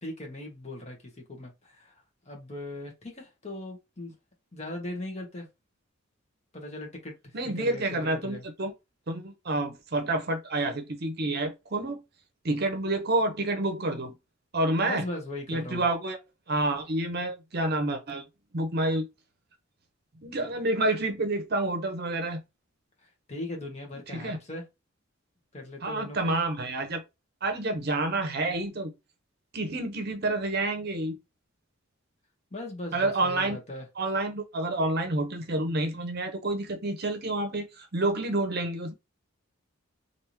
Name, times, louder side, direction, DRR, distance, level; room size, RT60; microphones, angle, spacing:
voice 1, 0.0-1.9 2.3-4.1 4.5-5.5 6.5-8.4 14.8-15.9 23.0-24.6 25.5-26.4 32.5-33.8, left 1 dB, 35° left, 1.2 m, -39 dB
voice 2, 7.3-8.7 9.1-12.0 12.4-14.1 14.5-15.0 15.5-16.2 16.5-18.2 18.5-19.1 20.2-22.4 24.1-24.4 25.8-27.0 27.4-28.9 29.5-31.2 32.9-33.6 34.0-38.9, right 2 dB, 50° right, 0.8 m, -28 dB
3.4 x 2.6 x 3.0 m
head